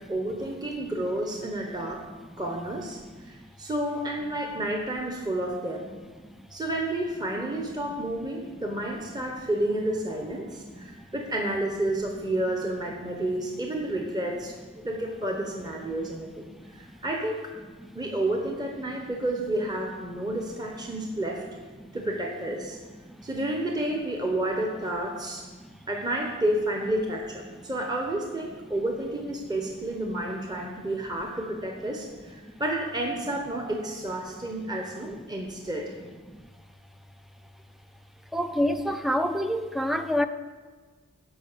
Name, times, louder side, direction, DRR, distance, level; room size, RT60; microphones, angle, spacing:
voice 1, 0.1-2.0 2.4-3.0 3.2-5.9 6.5-14.5 14.8-17.4 17.9-21.4 21.9-22.8 23.2-25.4 25.9-35.9, right 1 dB, 20° right, 0 dB, 1.0 m, -30 dB
voice 2, 38.3-40.3, equal, ahead, 9 dB, 0.4 m, -27 dB
13.0 x 5.4 x 6.7 m, 1.4 s
head